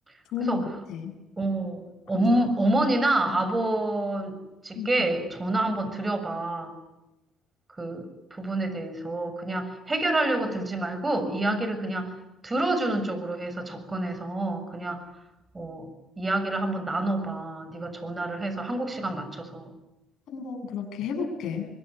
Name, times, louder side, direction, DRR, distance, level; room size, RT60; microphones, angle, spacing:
voice 1, 1.4-4.4 4.6-6.8 7.8-12.1 12.4-15.0 15.5-15.9 16.2-19.7, right 2 dB, 25° right, 9 dB, 7.0 m, -28 dB
voice 2, 20.3-21.7, left 6 dB, 70° left, 5 dB, 7.7 m, -31 dB
24.0 x 22.5 x 9.6 m, 0.97 s
supercardioid pair, 75°, 0 cm